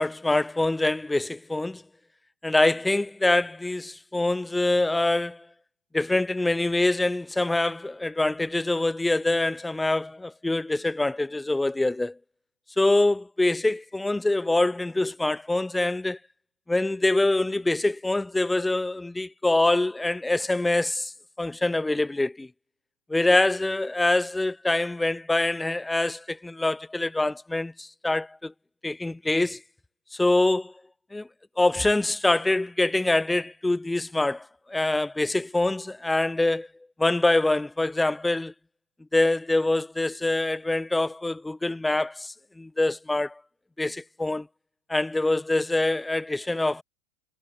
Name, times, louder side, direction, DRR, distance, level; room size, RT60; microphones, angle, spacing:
voice 1, 0.0-1.8 2.4-5.4 5.9-12.1 12.8-16.2 16.7-21.1 21.4-22.5 23.1-28.5 28.8-29.6 30.1-30.7 31.1-31.3 31.6-36.7 37.0-38.5 39.1-43.4 43.8-44.5 44.9-46.8, left 2 dB, 5° left, 1.0 m, -25 dB
supercardioid pair, 135°, 0 cm